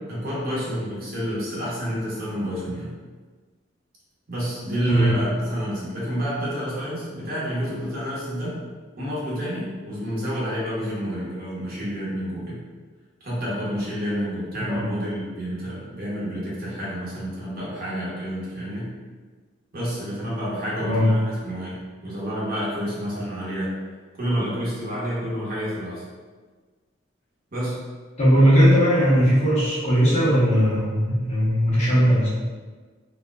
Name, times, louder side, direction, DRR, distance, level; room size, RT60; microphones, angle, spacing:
voice 1, 0.1-2.9 4.3-8.6 9.0-12.6 13.2-18.9 19.7-23.7 24.1-26.0 27.5-27.8, equal, 50° right, -7 dB, 1.0 m, -29 dB
voice 2, 28.2-32.3, equal, 35° left, -10 dB, 1.1 m, -18 dB
4.1 x 2.1 x 2.3 m, 1.4 s
head